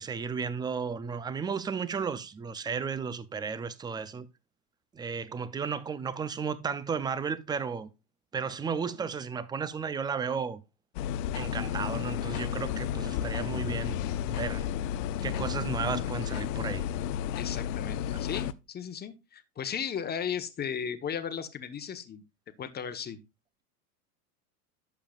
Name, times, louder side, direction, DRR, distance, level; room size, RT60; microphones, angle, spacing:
voice 1, 0.0-4.3 4.9-7.9 8.3-10.6 11.3-14.0 14.3-14.7 15.2-16.8, right 6 dB, 10° right, 0.4 m, -34 dB
sound 1, 10.9-18.5, left 10 dB, 55° left, 0.7 m, -32 dB
voice 2, 17.4-22.2 22.6-23.2, left 7 dB, 20° left, 1.1 m, -36 dB
11.5 x 7.3 x 2.4 m
hypercardioid pair, 105°, 46 cm